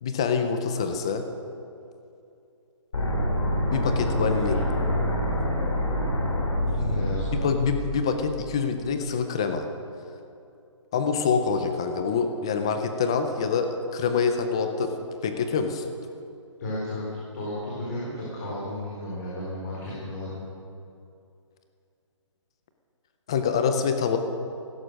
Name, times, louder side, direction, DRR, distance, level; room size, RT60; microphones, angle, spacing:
voice 1, 0.0-1.2 3.7-4.6 7.3-9.6 10.9-14.9 15.2-15.9 23.3-24.2, left 5 dB, 10° left, 7 dB, 0.4 m, -26 dB
sound 1, 2.9-8.9, equal, 65° left, 5.2 m, -27 dB
voice 2, 4.0-4.6 6.7-7.4 16.6-17.0 17.3-20.5, left 1 dB, 35° left, -7 dB, 4.3 m, -33 dB
16.0 x 14.0 x 6.3 m, 2.6 s
hypercardioid pair, 170°, 17 cm